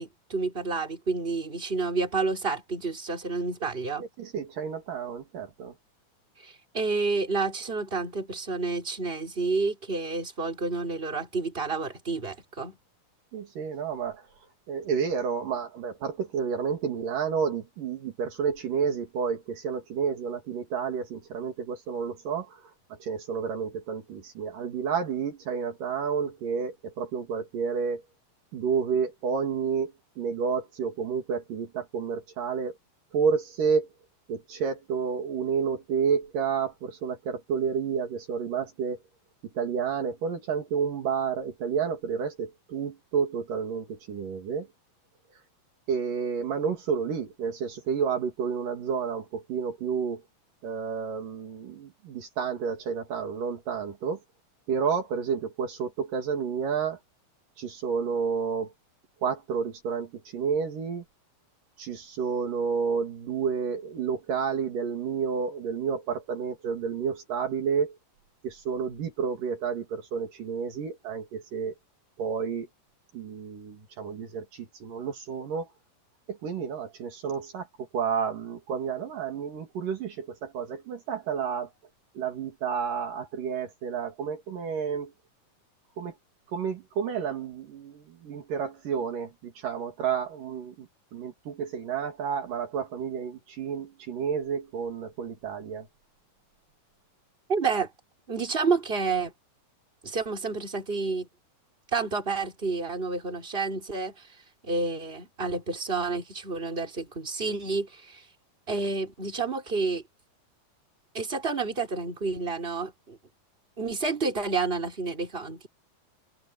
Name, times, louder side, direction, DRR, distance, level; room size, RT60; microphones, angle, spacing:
voice 1, 0.0-4.0 6.4-12.8 97.5-97.9 98.3-99.3 100.0-101.3 101.9-104.1 104.6-108.2 108.7-110.0 111.1-113.2 113.8-115.7, right 4 dB, 15° right, 4.4 m, -29 dB
voice 2, 4.0-5.7 13.3-14.3 14.7-28.0 28.5-32.8 33.1-33.9 34.3-39.0 39.5-44.7 45.9-50.2 50.6-54.2 54.7-57.0 57.6-58.7 59.2-61.0 61.8-68.0 68.4-71.7 72.2-72.7 73.1-75.7 76.3-81.7 82.2-85.1 86.0-86.1 86.5-95.9, right 6 dB, 65° right, 3.9 m, -30 dB
open air
omnidirectional pair, 4.2 m